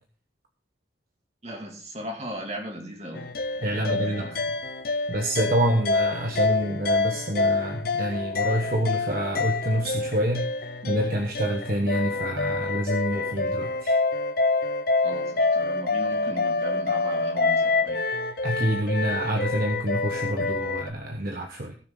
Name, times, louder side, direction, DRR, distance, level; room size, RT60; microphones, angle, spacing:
voice 1, 1.4-3.3 3.6-4.5 15.0-18.1, equal, 35° right, 2 dB, 2.5 m, -37 dB
sound 1, 3.1-20.9, left 3 dB, 55° left, 0.9 m, -27 dB
voice 2, 3.6-4.2 5.1-10.4 10.8-14.0 18.4-21.7, right 1 dB, 50° right, 2 dB, 1.2 m, -27 dB
18.5 x 6.4 x 3.8 m, 0.39 s
head